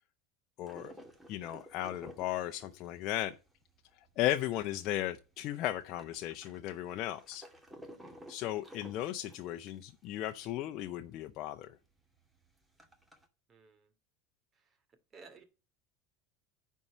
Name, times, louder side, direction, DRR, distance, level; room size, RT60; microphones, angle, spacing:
voice 1, 0.6-0.9 1.3-3.4 4.2-7.4 8.3-11.8, left 13 dB, 55° left, 0.7 m, -36 dB
sound 1, 0.7-4.7 5.0-5.1 5.3-10.7 11.0-11.1 11.3-11.5 12.0-13.3, equal, 10° right, 2.2 m, -53 dB
voice 2, 13.5-13.9 14.5-14.8 15.1-15.4, right 4 dB, 30° right, 2.5 m, -56 dB
9.6 x 4.7 x 7.4 m
supercardioid pair, 110°, 0 cm